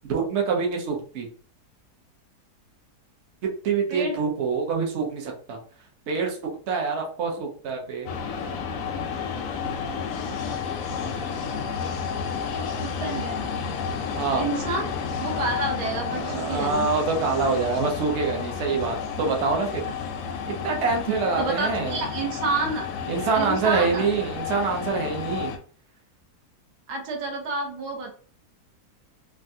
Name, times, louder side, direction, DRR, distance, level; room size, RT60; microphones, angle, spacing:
voice 1, 0.1-1.3 3.6-5.6 6.1-6.4 6.7-8.1 14.1-14.4 16.1-19.9 20.5-22.0 23.1-25.5, right 4 dB, 55° right, 1 dB, 0.9 m, -25 dB
voice 2, 3.9-4.2 12.4-13.4 14.4-14.9 15.2-16.9 21.4-22.9 23.3-24.1 26.9-28.1, right 3 dB, 75° right, 2 dB, 1.3 m, -29 dB
sound 1, 8.1-25.6, left 6 dB, 70° left, 0.8 m, -31 dB
3.4 x 2.1 x 2.6 m, 0.43 s
omnidirectional pair, 1.7 m